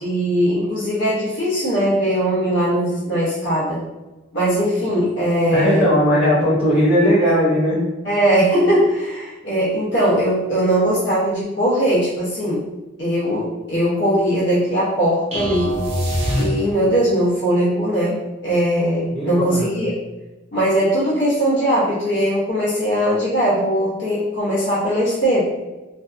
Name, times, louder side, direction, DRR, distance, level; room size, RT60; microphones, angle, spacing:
voice 1, 0.0-3.8 4.3-5.9 8.0-12.7 13.0-15.8 16.4-18.2 18.4-19.9 20.5-25.4, equal, 60° left, -8 dB, 0.7 m, -20 dB
voice 2, 5.5-7.8 19.1-19.7, equal, 10° left, -12 dB, 0.9 m, -17 dB
sound 1, 15.3-17.0, equal, 35° right, 0.6 m, -23 dB
2.6 x 2.3 x 2.4 m, 1.1 s
head